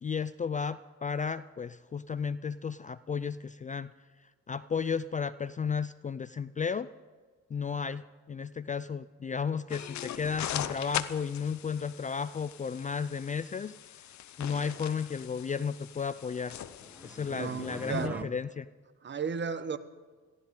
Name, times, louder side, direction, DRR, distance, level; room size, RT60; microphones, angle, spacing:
voice 1, 0.0-3.9 4.5-6.9 7.5-13.7 14.4-16.5 17.0-18.6, left 6 dB, 25° left, 0.4 m, -33 dB
sound 1, 9.7-18.1, left 11 dB, 70° left, 0.8 m, -41 dB
sound 2, 16.3-18.2, right 1 dB, 5° right, 0.8 m, -44 dB
voice 2, 17.3-18.3 19.0-19.8, right 6 dB, 35° right, 1.1 m, -34 dB
22.5 x 15.5 x 3.8 m
cardioid pair, 90°, 30 cm